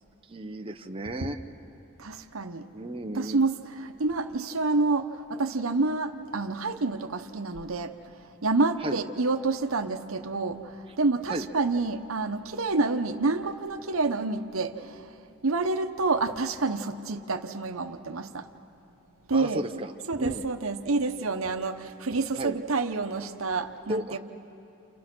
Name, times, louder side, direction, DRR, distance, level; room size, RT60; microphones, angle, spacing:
voice 1, 0.3-1.4 2.7-3.4 8.8-9.0 11.3-11.5 19.3-19.9 20.2-20.4 22.4-22.6 23.9-24.2, right 1 dB, 25° right, 4 dB, 0.8 m, -33 dB
voice 2, 2.0-2.7 3.1-7.9 8.4-15.2 15.4-18.5 19.3-19.6 20.1-24.2, right 3 dB, 80° right, 7 dB, 1.0 m, -28 dB
30.0 x 29.0 x 6.1 m, 2.9 s
head